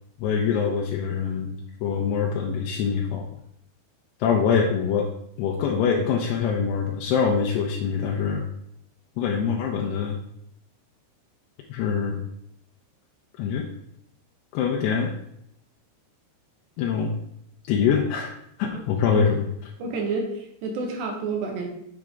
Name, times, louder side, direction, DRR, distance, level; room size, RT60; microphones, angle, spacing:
voice 1, 0.2-3.2 4.2-5.1 5.4-8.4 9.2-10.2 11.7-12.2 13.4-13.6 14.5-15.1 16.8-17.1 17.7-19.5, left 6 dB, 80° left, -1 dB, 2.8 m, -24 dB
voice 2, 19.8-21.7, right 3 dB, 75° right, 2 dB, 3.4 m, -29 dB
7.6 x 6.5 x 3.6 m, 0.75 s
omnidirectional pair, 4.9 m